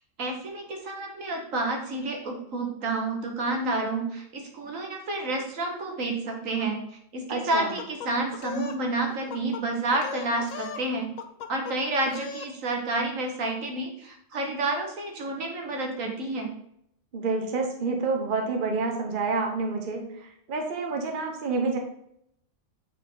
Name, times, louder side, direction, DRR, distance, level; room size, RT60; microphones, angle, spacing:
voice 1, 0.2-6.8 7.1-11.1 11.5-16.5, right 2 dB, 70° right, 2 dB, 1.7 m, -29 dB
voice 2, 7.3-7.7 17.1-21.8, right 4 dB, 40° right, 2 dB, 1.0 m, -28 dB
sound 1, 7.5-8.8 9.1-9.6 9.9-10.9 11.2-11.8 12.1-12.5, left 7 dB, 80° left, 1.1 m, -38 dB
8.2 x 4.3 x 3.8 m, 0.72 s
omnidirectional pair, 1.4 m